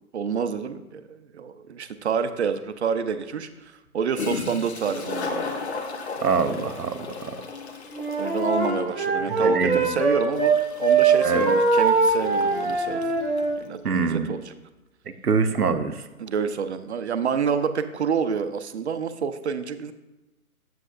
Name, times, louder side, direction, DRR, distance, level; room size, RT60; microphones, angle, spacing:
voice 1, 0.1-3.5 3.9-5.4 8.2-13.0 13.6-14.5 16.2-19.9, right 6 dB, 50° right, 11 dB, 0.5 m, -28 dB
Toilet flush, 3.9-4.0 4.1-13.5, left 4 dB, 45° left, 0.8 m, -35 dB
voice 2, 6.2-7.4 9.3-10.0 11.2-11.5 13.8-14.3 15.1-16.0, right 5 dB, 90° right, 9 dB, 0.7 m, -25 dB
Wind instrument woodwind instrument, 7.9-10.5 10.8-13.6, right 4 dB, ahead, 0.3 m, -22 dB
7.6 x 7.5 x 2.5 m, 1.0 s
figure-of-eight pair, 130°, 44 cm